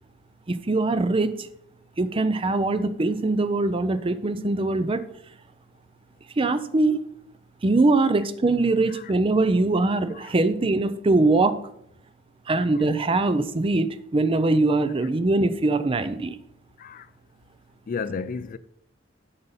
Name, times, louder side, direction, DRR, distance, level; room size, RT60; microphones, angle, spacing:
voice 1, 0.5-1.5 2.0-5.0 6.4-7.0 7.6-11.6 12.5-16.4, right 2 dB, 30° right, 0.5 m, -22 dB
voice 2, 17.9-18.6, left 5 dB, 45° left, 0.4 m, -33 dB
8.0 x 5.2 x 5.6 m
head